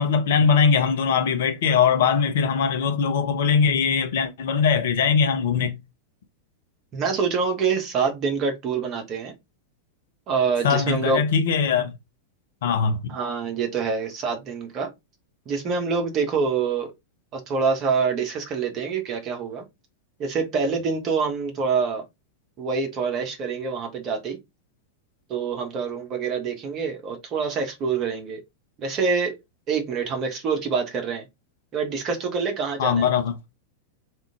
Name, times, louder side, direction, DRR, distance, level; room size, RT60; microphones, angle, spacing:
voice 1, 0.0-5.8 10.6-12.0 12.6-13.2 32.8-33.3, left 6 dB, 55° left, 0.8 m, -21 dB
voice 2, 6.9-9.3 10.3-11.2 13.1-14.9 15.4-16.9 17.3-19.7 20.2-22.0 22.6-24.4 25.3-28.4 28.8-29.4 29.7-31.2 31.7-33.1, right 5 dB, 35° right, 1.4 m, -26 dB
3.6 x 2.8 x 3.5 m
figure-of-eight pair, 90°, 0 cm